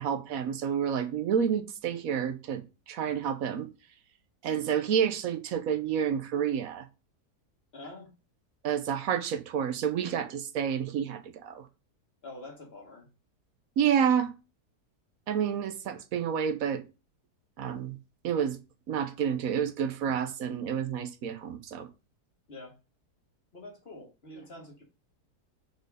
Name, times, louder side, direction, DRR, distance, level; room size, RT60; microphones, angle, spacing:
voice 1, 0.0-3.7 4.4-6.9 8.6-11.7 13.8-14.3 15.3-16.8 17.6-18.0 18.2-18.6 18.9-21.9, right 8 dB, 65° right, 1.2 m, -29 dB
voice 2, 7.7-8.1 12.2-13.1 22.5-22.8 23.5-24.8, left 2 dB, 40° left, 2.0 m, -46 dB
5.1 x 4.5 x 4.8 m
omnidirectional pair, 1.7 m